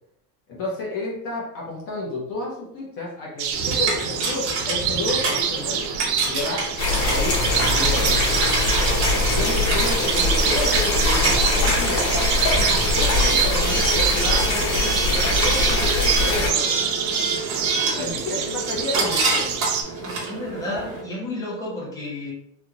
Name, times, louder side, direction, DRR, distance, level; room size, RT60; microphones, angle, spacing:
voice 1, 0.5-5.8 6.3-6.7 7.0-8.2 9.3-12.2 12.7-16.8 17.6-19.5, left 2 dB, 30° left, -4 dB, 0.9 m, -31 dB
sound 1, 3.4-19.8, right 8 dB, 70° right, 0.6 m, -26 dB
Coin (dropping) / Alarm, 3.5-21.0, right 3 dB, 30° right, 0.9 m, -28 dB
sound 2, 6.8-16.5, left 2 dB, 75° left, 1.5 m, -22 dB
voice 2, 20.0-22.3, left 2 dB, 10° left, -5 dB, 0.5 m, -33 dB
3.4 x 2.4 x 2.8 m, 0.75 s
cardioid pair, 175°, 43 cm